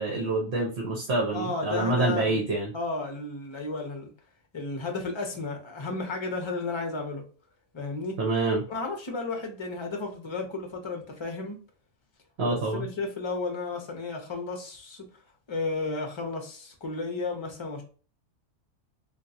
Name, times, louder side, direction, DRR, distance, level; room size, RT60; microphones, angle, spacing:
voice 1, 0.0-2.7 8.2-8.6 12.4-12.9, right 2 dB, 55° right, 1.1 m, -27 dB
voice 2, 1.3-2.4 2.7-4.1 4.5-7.2 7.7-8.2 8.7-11.6 12.5-15.1 15.5-17.8, left 3 dB, 25° left, 0.8 m, -33 dB
3.6 x 2.5 x 2.7 m
omnidirectional pair, 1.4 m